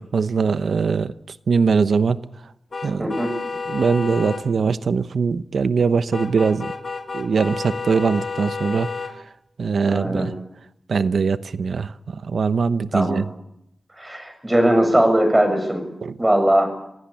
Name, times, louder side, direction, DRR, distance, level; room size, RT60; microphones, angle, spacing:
voice 1, 0.1-1.1 1.5-2.2 2.8-3.1 3.7-6.7 7.1-8.9 9.6-10.3 10.9-11.9 12.3-13.2 16.0-16.1, right 5 dB, 85° right, 0.9 m, -21 dB
sound 1, 2.7-4.4 6.1-9.1, left 4 dB, 60° left, 2.5 m, -30 dB
voice 2, 3.0-3.3 9.8-10.4 12.9-13.3 14.0-15.9 16.2-16.7, right 1 dB, 20° right, 7.5 m, -19 dB
26.0 x 16.5 x 8.6 m
wide cardioid pair, 65°, 0 cm